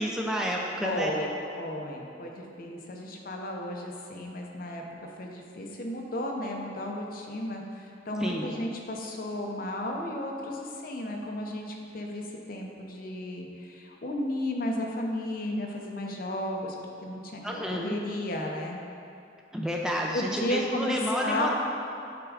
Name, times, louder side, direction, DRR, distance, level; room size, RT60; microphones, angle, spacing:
voice 1, 0.0-1.1 8.2-8.5 17.4-18.0 19.5-21.6, equal, 5° right, -1 dB, 0.4 m, -30 dB
voice 2, 0.8-4.8 5.2-16.7 17.0-18.8 20.1-21.6, left 1 dB, 55° left, 0 dB, 0.8 m, -33 dB
8.6 x 3.6 x 4.8 m, 2.6 s
head